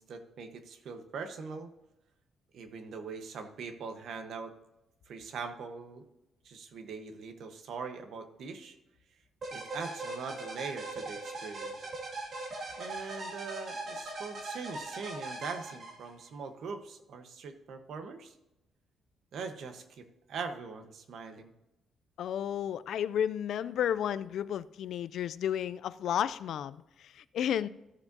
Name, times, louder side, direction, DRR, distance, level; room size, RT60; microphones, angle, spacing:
voice 1, 0.0-1.7 2.5-4.5 5.1-6.0 6.4-8.8 9.5-11.8 12.8-18.3 19.3-21.5, right 5 dB, 60° right, 1.1 m, -42 dB
sound 1, 9.4-16.3, right 2 dB, 40° right, 2.2 m, -40 dB
voice 2, 22.2-27.7, left 9 dB, 65° left, 0.3 m, -32 dB
14.5 x 7.1 x 2.7 m
cardioid pair, 165°, 0 cm